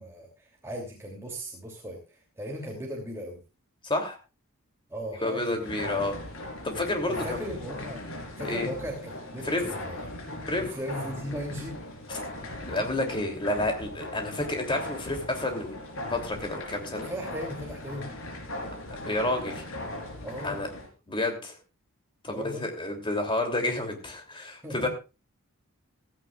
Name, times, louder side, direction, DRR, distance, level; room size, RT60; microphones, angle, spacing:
voice 1, 0.0-3.4 4.9-5.6 7.1-8.1 8.4-10.1 10.6-11.8 17.0-18.1 20.2-20.6 22.3-22.6 24.6-24.9, equal, 10° right, -2 dB, 3.0 m, -37 dB
voice 2, 3.8-4.2 5.2-6.1 6.6-7.4 8.4-8.7 9.4-9.7 10.5-10.7 12.7-15.7 16.1-17.1 19.1-19.6 20.4-20.7 21.1-21.6 22.2-24.9, left 2 dB, 25° left, 4 dB, 3.0 m, -29 dB
sound 1, 5.6-20.9, left 1 dB, 65° left, 4.0 m, -39 dB
15.5 x 15.5 x 2.5 m, 0.29 s
head